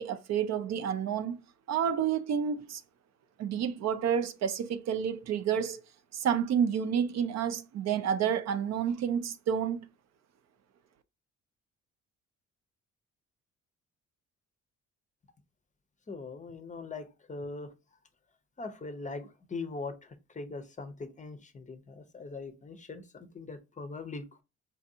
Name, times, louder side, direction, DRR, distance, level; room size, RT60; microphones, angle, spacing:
voice 1, 0.0-1.4 1.7-2.8 3.4-5.8 6.1-9.9, right 8 dB, 60° right, 0.5 m, -29 dB
voice 2, 16.1-17.7 18.6-24.4, left 3 dB, 25° left, 0.5 m, -41 dB
4.3 x 2.6 x 2.6 m
cardioid pair, 90°, 30 cm